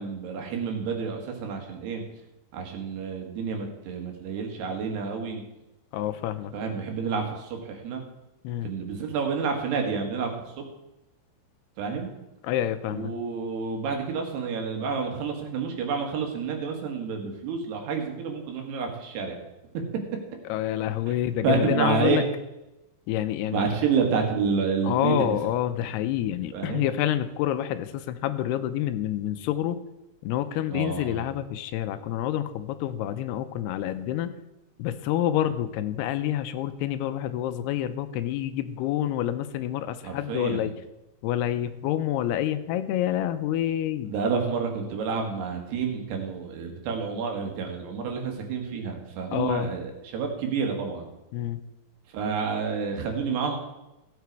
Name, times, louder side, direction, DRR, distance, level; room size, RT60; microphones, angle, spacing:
voice 1, 0.0-2.0 2.5-5.4 6.5-8.0 8.6-10.3 10.6-10.7 11.8-12.1 12.9-19.4 21.4-22.2 23.5-25.4 26.5-26.9 30.7-31.2 40.0-40.7 44.1-51.1 52.1-53.6, right 5 dB, 80° right, 2 dB, 3.8 m, -29 dB
voice 2, 5.9-6.5 8.4-8.7 12.4-13.1 20.5-22.2 23.1-23.7 24.8-29.8 30.2-34.3 34.8-40.7 41.2-44.1 49.3-49.7 51.3-51.6, left 12 dB, 85° left, 11 dB, 2.6 m, -28 dB
15.5 x 7.7 x 4.7 m, 0.95 s
omnidirectional pair, 4.8 m